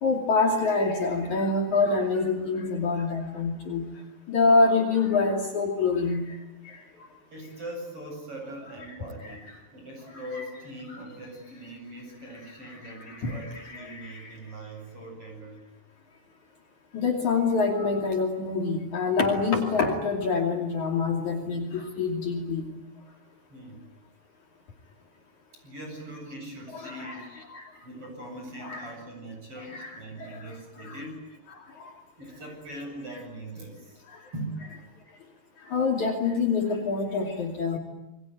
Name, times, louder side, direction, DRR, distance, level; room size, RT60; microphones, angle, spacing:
voice 1, 0.0-3.9 4.3-6.2 10.4-10.5 13.2-14.2 16.9-22.6 26.7-27.2 27.5-27.6 28.6-28.9 29.7-30.0 30.9-31.0 35.7-37.8, left 4 dB, 50° left, 2 dB, 3.8 m, -26 dB
voice 2, 7.3-15.6 23.5-23.8 25.6-27.3 27.8-31.2 32.2-34.0 34.3-34.6, right 1 dB, 35° right, 3 dB, 8.9 m, -41 dB
28.0 x 22.5 x 9.5 m, 0.94 s
omnidirectional pair, 4.7 m